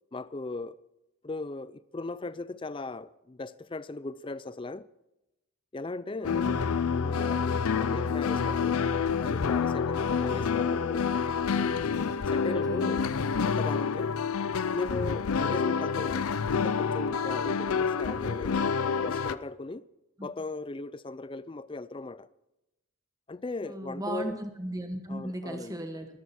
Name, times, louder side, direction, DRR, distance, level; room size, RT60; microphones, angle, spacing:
voice 1, 0.1-0.8 1.2-4.9 5.7-6.4 7.0-7.4 7.7-8.8 9.2-11.1 12.3-13.0 13.4-14.1 14.7-18.6 18.9-19.9 20.2-22.3 23.3-24.4 25.1-25.8, left 3 dB, 25° left, 0.4 m, -38 dB
sound 1, 6.2-19.4, left 6 dB, 85° left, 0.6 m, -28 dB
voice 2, 6.2-6.8 12.4-13.0 23.6-26.1, right 1 dB, 15° right, 1.3 m, -37 dB
21.5 x 11.0 x 4.3 m
head